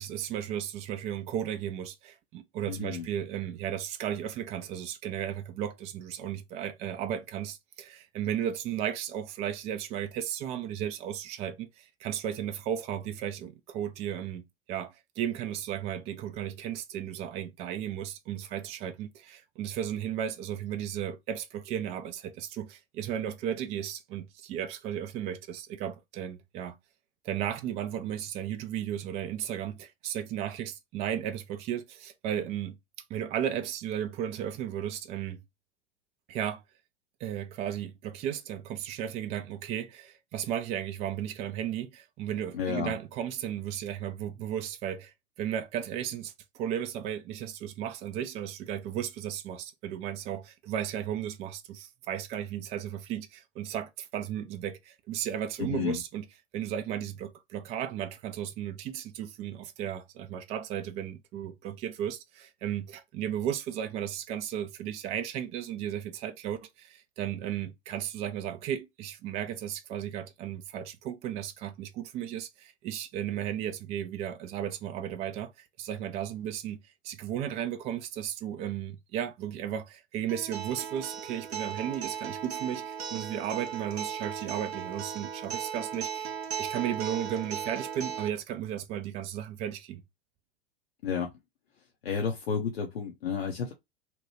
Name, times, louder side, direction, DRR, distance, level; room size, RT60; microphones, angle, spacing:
voice 1, 0.0-26.8 27.2-32.8 33.1-35.4 36.3-36.6 37.2-56.2 56.5-86.3 86.6-90.0, right 10 dB, 20° right, 0.3 m, -35 dB
voice 2, 2.7-3.1 42.5-42.9 55.6-56.0 91.0-91.3 92.0-93.7, left 6 dB, 65° left, 0.7 m, -31 dB
Acoustic guitar, 80.3-88.3, right 7 dB, 75° right, 0.6 m, -37 dB
2.9 x 2.2 x 3.0 m
figure-of-eight pair, 90°, 32 cm